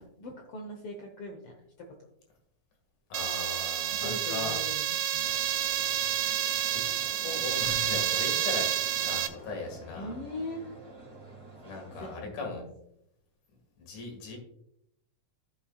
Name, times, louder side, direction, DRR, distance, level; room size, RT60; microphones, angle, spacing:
voice 1, 0.0-1.6 4.0-4.8 5.1-5.4 9.9-10.6 12.0-12.6, left 1 dB, 65° left, 2 dB, 1.6 m, -40 dB
voice 2, 3.1-4.6 6.7-6.8 7.2-8.7 8.9-10.2 11.6-12.6 13.8-14.4, left 4 dB, 85° left, 1 dB, 3.4 m, -38 dB
sound 1, 3.1-9.3, right 11 dB, 90° right, 2.2 m, -29 dB
sound 2, 5.2-12.2, right 1 dB, 30° right, 0.6 m, -49 dB
14.5 x 5.5 x 2.3 m, 0.78 s
omnidirectional pair, 3.4 m